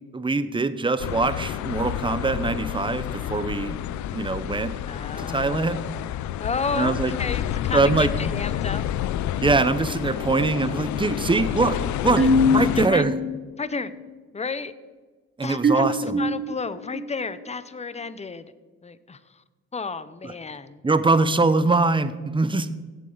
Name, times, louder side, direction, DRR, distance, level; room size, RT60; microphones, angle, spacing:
voice 1, 0.1-3.8 4.1-4.7 5.2-5.8 6.7-7.1 7.7-8.1 9.4-11.8 12.0-12.2 12.5-13.1 15.4-16.2 20.2-20.3 20.8-22.7, right 3 dB, 15° right, 13 dB, 0.7 m, -23 dB
sound 1, 1.0-12.9, left 11 dB, 70° left, 0.5 m, -29 dB
voice 2, 4.9-6.0 6.4-8.8 12.2-12.3 12.8-13.0 13.6-13.9 14.3-14.7 15.4-18.5 18.8-19.2 19.7-20.8, left 4 dB, 20° left, 14 dB, 0.7 m, -32 dB
sound 2, 12.1-13.4 13.7-14.1 15.6-17.5, left 1 dB, 30° right, 1.2 m, -25 dB
16.5 x 7.5 x 3.9 m, 1.3 s
cardioid pair, 90°, 30 cm